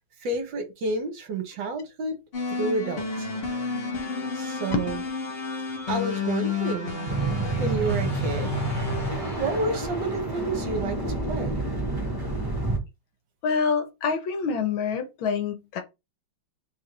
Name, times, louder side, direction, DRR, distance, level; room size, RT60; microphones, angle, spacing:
voice 1, 0.2-2.2 2.5-3.3 4.3-5.0 5.9-6.9 7.6-8.6 9.4-11.6, right 3 dB, 65° right, 1.4 m, -30 dB
sound 1, 2.3-10.5, left 4 dB, 40° left, 1.0 m, -31 dB
sound 2, 7.1-12.8, right 2 dB, 20° right, 0.6 m, -29 dB
voice 2, 13.4-15.8, left 5 dB, 75° left, 1.6 m, -26 dB
3.5 x 2.5 x 4.4 m
omnidirectional pair, 2.3 m